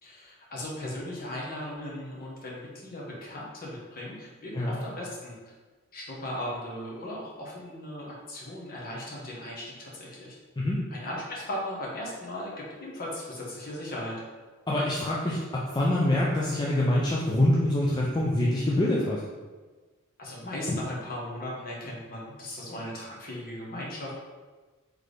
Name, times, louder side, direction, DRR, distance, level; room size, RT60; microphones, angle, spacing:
voice 1, 0.0-5.4 5.9-10.4 10.9-14.2 20.2-24.2, left 1 dB, 45° left, -4 dB, 1.1 m, -37 dB
voice 2, 14.7-19.2, left 1 dB, 20° left, -5 dB, 0.4 m, -25 dB
4.1 x 3.3 x 3.3 m, 1.3 s
head